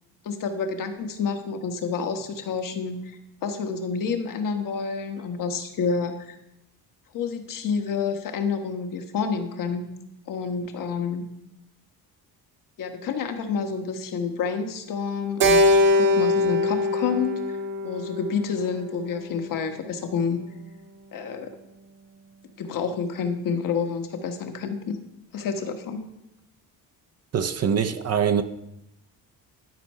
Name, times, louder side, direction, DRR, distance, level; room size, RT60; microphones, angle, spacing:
voice 1, 0.2-6.4 7.1-9.9 10.3-11.2 12.8-17.6 17.8-20.4 21.1-21.5 22.6-25.0 25.3-26.0, left 5 dB, 60° left, 1.2 m, -29 dB
Keyboard (musical), 15.4-19.8, left 2 dB, 60° right, 1.4 m, -23 dB
voice 2, 27.3-28.4, right 7 dB, 40° right, 0.6 m, -23 dB
12.0 x 4.5 x 5.5 m
cardioid pair, 115°, 37 cm